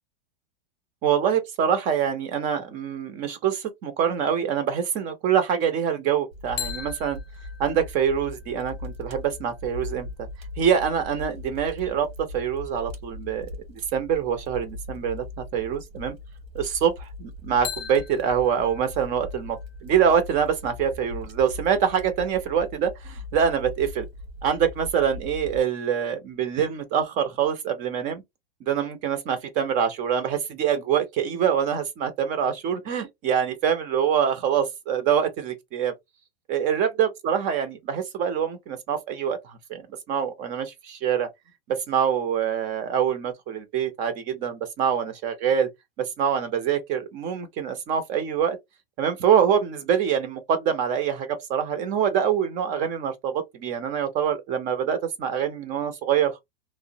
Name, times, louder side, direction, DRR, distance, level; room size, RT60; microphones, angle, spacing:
voice 1, 1.0-7.2 7.6-10.3 10.6-16.1 16.5-16.9 17.2-24.1 24.4-28.2 28.6-35.9 36.5-39.8 40.1-41.3 41.7-45.7 46.0-48.6 49.0-56.4, right 8 dB, 25° right, 0.5 m, -25 dB
Fire, 6.3-25.6, left 2 dB, 90° right, 1.2 m, -40 dB
sound 1, 6.6-10.4 17.6-21.5, left 9 dB, 30° left, 0.7 m, -41 dB
2.9 x 2.1 x 2.6 m
supercardioid pair, 155°, 30 cm